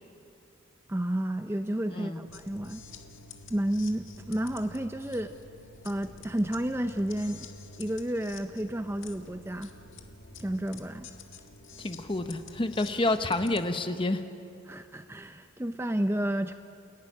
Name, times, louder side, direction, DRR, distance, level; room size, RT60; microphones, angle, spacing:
voice 1, 0.9-2.8 3.5-5.3 5.8-7.5 7.8-9.7 10.4-11.1 14.7-16.5, right 1 dB, 10° right, 8 dB, 0.5 m, -31 dB
sound 1, 2.3-13.6, left 3 dB, 70° left, 1.7 m, -48 dB
voice 2, 11.8-14.2, left 2 dB, 25° left, 8 dB, 1.0 m, -29 dB
28.5 x 14.5 x 9.8 m, 2.7 s
head